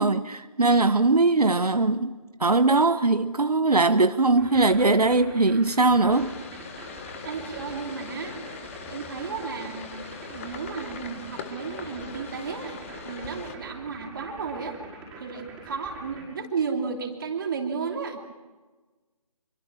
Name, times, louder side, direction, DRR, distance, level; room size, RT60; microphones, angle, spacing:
voice 1, 0.0-6.4, right 3 dB, 85° right, 1.0 m, -21 dB
sound 1, 4.4-16.2, right 2 dB, 5° right, 5.7 m, -44 dB
sound 2, 6.1-13.5, left 6 dB, 20° left, 1.3 m, -41 dB
voice 2, 7.2-8.3 8.9-10.0 10.3-14.8 15.2-18.2, right 5 dB, 35° right, 3.0 m, -33 dB
26.0 x 23.5 x 6.2 m
figure-of-eight pair, 155°, 19 cm